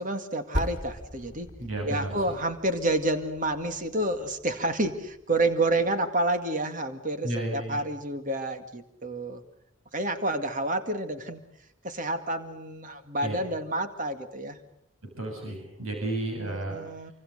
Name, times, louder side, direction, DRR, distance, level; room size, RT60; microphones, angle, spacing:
voice 1, 0.0-1.5 1.9-9.4 9.9-11.4 11.8-14.6 16.4-17.1, right 2 dB, 35° right, 8 dB, 2.1 m, -29 dB
Percussion, 0.5-5.4, left 1 dB, 25° left, 2.7 m, -39 dB
voice 2, 1.6-2.2 7.2-7.8 13.2-13.4 15.2-16.8, right 2 dB, 75° right, 2 dB, 7.4 m, -32 dB
27.0 x 25.0 x 6.6 m, 0.74 s
head